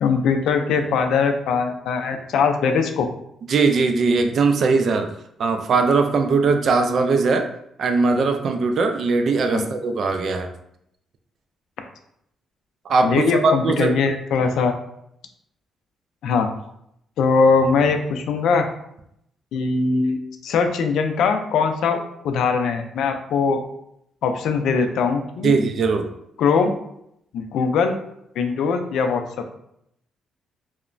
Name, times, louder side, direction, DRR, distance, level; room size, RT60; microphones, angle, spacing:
voice 1, 0.0-3.1 9.5-9.7 13.0-14.7 16.2-16.5 17.2-18.7 19.5-20.2 20.4-23.6 24.2-25.5 26.4-26.7 27.3-27.9 28.4-29.2, left 5 dB, 75° left, 6 dB, 0.3 m, -21 dB
voice 2, 3.5-5.1 5.4-7.5 7.8-10.5 12.9-13.9 25.4-26.1, right 4 dB, 55° right, 6 dB, 0.3 m, -20 dB
3.0 x 2.0 x 2.5 m, 0.75 s
cardioid pair, 90°, 0 cm